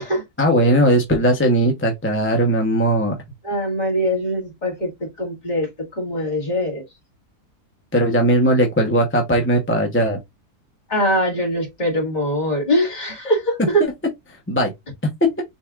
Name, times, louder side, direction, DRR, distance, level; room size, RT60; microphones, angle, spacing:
voice 1, 0.4-3.2 7.9-10.2 14.3-14.7 15.2-15.3, right 1 dB, 10° left, 0.6 m, -18 dB
voice 2, 3.4-4.9 5.2-6.8 10.9-13.8, equal, 25° left, 2.2 m, -22 dB
6.4 x 3.3 x 2.4 m
omnidirectional pair, 1.7 m